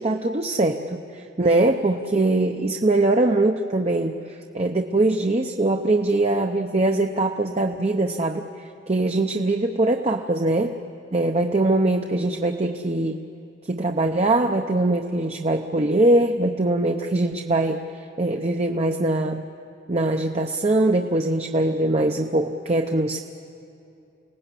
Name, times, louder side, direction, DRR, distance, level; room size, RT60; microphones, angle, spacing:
voice 1, 0.0-10.7 11.1-13.2 13.7-17.8 18.2-19.4 19.9-23.2, right 2 dB, 30° right, 4 dB, 0.7 m, -22 dB
29.0 x 19.0 x 8.3 m, 2.7 s
head